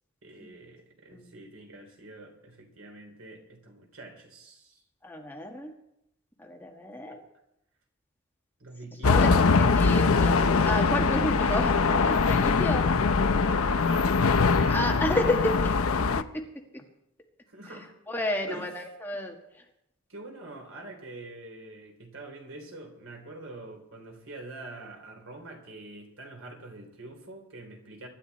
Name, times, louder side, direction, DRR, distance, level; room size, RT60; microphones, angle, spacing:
voice 1, 0.2-4.8 7.1-7.2 8.6-9.8 12.6-15.2 17.5-17.9 18.5-18.7 20.1-28.1, right 2 dB, 70° right, 2 dB, 3.4 m, -45 dB
voice 2, 5.0-5.7 6.4-7.2 9.0-12.9 14.6-15.8 16.1-16.4 16.7-16.8 18.1-19.6, left 1 dB, 10° left, 1 dB, 1.6 m, -31 dB
sound 1, 9.0-16.2, left 4 dB, 90° left, 0.6 m, -22 dB
23.5 x 11.5 x 4.1 m, 0.81 s
head